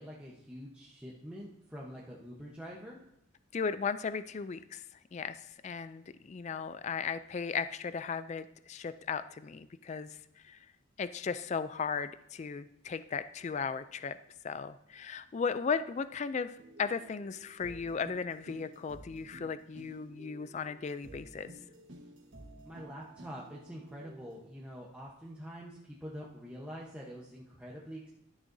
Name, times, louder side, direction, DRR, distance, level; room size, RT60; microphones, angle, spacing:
voice 1, 0.0-3.0 22.7-28.1, equal, 5° right, -5 dB, 0.9 m, -46 dB
voice 2, 3.5-4.8 5.1-10.2 10.4-10.7 11.0-14.2 14.4-21.5, left 5 dB, 35° left, 13 dB, 0.3 m, -36 dB
sound 1, 16.6-24.5, right 1 dB, 60° right, 1.3 m, -53 dB
12.0 x 10.0 x 2.7 m, 0.81 s
head